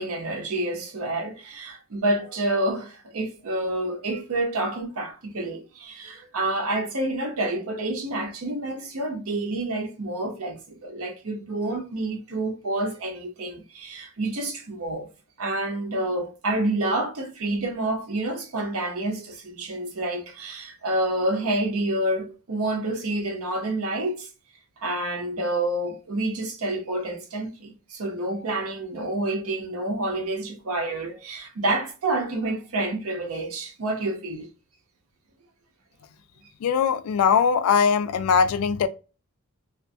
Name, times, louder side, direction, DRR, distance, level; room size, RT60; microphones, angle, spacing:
voice 1, 0.0-15.1 15.4-24.3 24.8-34.5, right 2 dB, 75° right, 0.6 m, -28 dB
voice 2, 36.6-38.9, left 6 dB, 85° left, 0.3 m, -21 dB
2.4 x 2.3 x 2.6 m
head